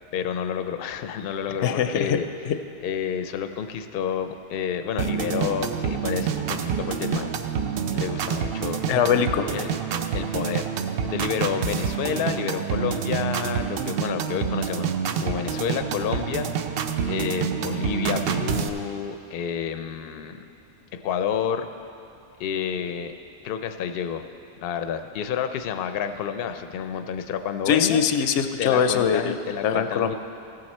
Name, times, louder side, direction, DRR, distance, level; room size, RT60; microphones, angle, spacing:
voice 1, 0.1-2.3 2.8-7.4 7.9-8.8 9.5-9.7 10.1-16.5 17.1-20.5 20.9-21.7 22.4-23.1 23.4-24.2 24.6-28.0 28.6-30.1, left 8 dB, 65° left, 8 dB, 0.7 m, -29 dB
voice 2, 1.6-2.2 2.4-2.6 8.9-9.5 27.7-29.3 29.6-30.1, left 8 dB, 85° left, 8 dB, 0.9 m, -22 dB
sound 1, 5.0-18.7, right 7 dB, 65° right, 0.7 m, -27 dB
15.0 x 7.7 x 4.2 m, 2.8 s
omnidirectional pair, 1.2 m